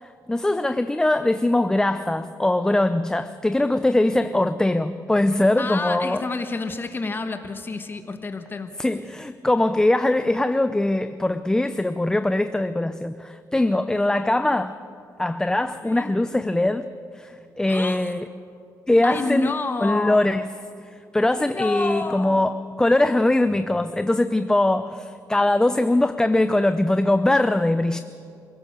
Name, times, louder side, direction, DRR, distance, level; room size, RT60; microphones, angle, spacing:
voice 1, 0.0-6.2 8.8-14.8 15.2-16.9 17.1-18.3 18.9-19.5 19.8-20.5 20.9-28.0, left 1 dB, 10° left, 0.6 m, -21 dB
voice 2, 5.6-8.7 15.8-16.1 17.7-18.1 19.0-20.2 21.4-22.4, left 3 dB, 30° left, 1.4 m, -29 dB
28.0 x 16.5 x 6.7 m
cardioid pair, 110°, 7 cm